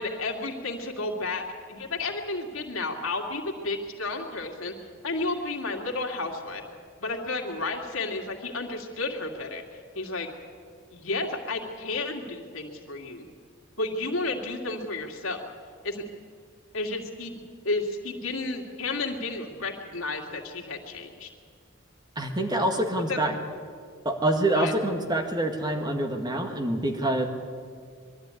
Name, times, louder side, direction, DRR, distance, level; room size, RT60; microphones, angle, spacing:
voice 1, 0.0-4.7 5.0-6.6 7.0-9.6 9.9-10.3 10.9-13.3 13.8-15.5 15.8-16.0 16.7-17.4 17.6-21.3 23.1-23.2 24.5-24.7, left 3 dB, 90° left, 2 dB, 2.4 m, -32 dB
voice 2, 22.2-23.3 24.1-27.3, right 1 dB, 20° right, 4 dB, 1.8 m, -26 dB
22.5 x 13.0 x 9.7 m, 2.1 s
head